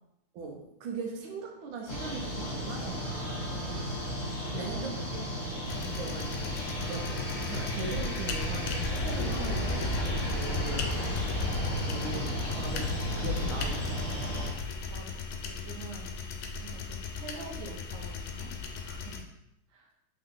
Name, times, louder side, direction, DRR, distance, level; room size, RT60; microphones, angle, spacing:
voice 1, 0.3-3.5 4.5-6.5 6.8-11.2 11.8-14.2, right 4 dB, 75° right, 1 dB, 1.4 m, -40 dB
sound 1, 1.9-14.5, equal, 40° left, 1.9 m, -35 dB
voice 2, 3.5-4.0 4.4-4.8 5.7-6.0 11.0-11.3 14.4-15.1 15.4-16.1 16.5-18.5 18.8-19.2 19.7-19.9, right 3 dB, 55° right, -2 dB, 0.9 m, -47 dB
sound 2, 5.6-19.2, left 5 dB, 85° left, 1.5 m, -39 dB
sound 3, 6.1-15.3, left 1 dB, 65° left, 1.2 m, -35 dB
3.8 x 3.6 x 3.6 m, 0.86 s
omnidirectional pair, 2.3 m